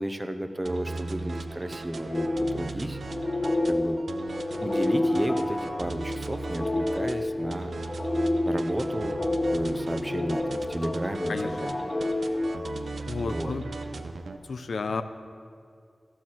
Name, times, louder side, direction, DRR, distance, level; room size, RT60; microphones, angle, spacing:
voice 1, 0.0-3.0 3.7-4.0 4.6-7.7 8.4-9.2 9.5-11.9 13.3-13.5, right 1 dB, 15° right, 8 dB, 0.7 m, -33 dB
sound 1, 0.7-14.4, right 3 dB, 75° right, 0.6 m, -38 dB
sound 2, 2.1-13.4, left 1 dB, 30° left, 0.5 m, -29 dB
voice 2, 13.1-13.7 14.5-15.0, left 4 dB, 80° left, 10 dB, 0.5 m, -31 dB
14.0 x 6.4 x 6.1 m, 2.2 s
wide cardioid pair, 70°, 0 cm